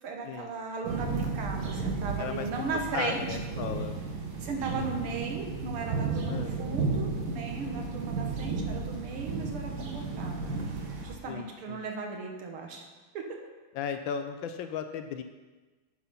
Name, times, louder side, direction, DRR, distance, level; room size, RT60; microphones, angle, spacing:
voice 1, 0.0-3.4 4.4-10.6 11.0-12.9 13.1-13.4, right 4 dB, 85° right, 2 dB, 2.1 m, -36 dB
sound 1, 0.8-11.1, right 4 dB, 55° right, 1.6 m, -33 dB
voice 2, 2.7-4.0 6.3-6.6 11.3-11.8 13.7-15.2, left 7 dB, 75° left, 8 dB, 1.2 m, -36 dB
9.6 x 5.5 x 5.7 m, 1.3 s
omnidirectional pair, 2.4 m